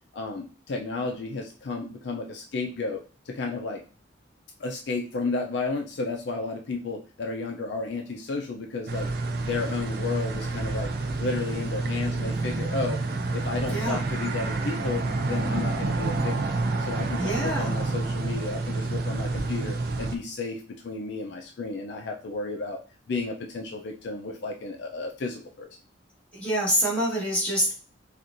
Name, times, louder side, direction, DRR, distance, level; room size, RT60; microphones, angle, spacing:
voice 1, 0.1-3.8 4.6-9.1 9.4-10.9 11.2-13.0 13.3-16.5 16.8-22.8 23.1-25.7, left 3 dB, 60° left, 2 dB, 0.4 m, -32 dB
sound 1, 8.9-20.2, right 3 dB, 55° right, 0.4 m, -29 dB
voice 2, 13.7-14.0 17.2-17.7 26.3-27.7, equal, 5° left, -8 dB, 1.5 m, -26 dB
4.3 x 2.4 x 2.5 m, 0.37 s
head